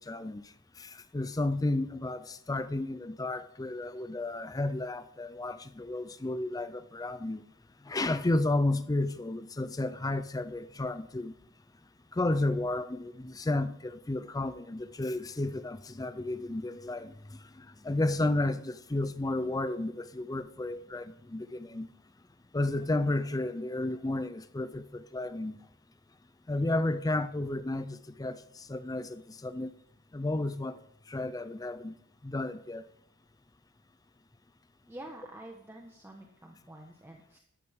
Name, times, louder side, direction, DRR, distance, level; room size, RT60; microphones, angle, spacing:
voice 1, 0.0-7.4 7.8-11.3 12.1-21.9 22.5-25.5 26.5-29.7 30.1-30.8 31.1-31.9 32.2-32.8, left 2 dB, 15° left, 0.4 m, -32 dB
voice 2, 34.9-37.4, right 1 dB, 10° right, 1.2 m, -48 dB
14.0 x 12.5 x 3.6 m
head